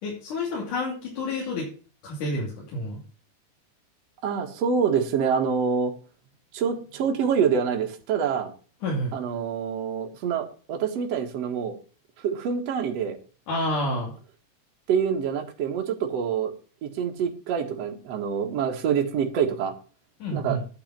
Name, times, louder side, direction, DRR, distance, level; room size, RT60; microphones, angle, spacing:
voice 1, 0.0-1.7 2.0-3.0 8.8-9.2 13.5-14.1 20.2-20.6, left 1 dB, 50° left, -4 dB, 3.9 m, -29 dB
voice 2, 4.2-5.9 6.5-8.5 9.1-11.7 12.2-13.2 14.9-16.5 16.8-19.7 20.3-20.6, right 7 dB, 65° right, 3 dB, 1.6 m, -26 dB
9.1 x 8.7 x 5.8 m, 0.37 s
omnidirectional pair, 5.3 m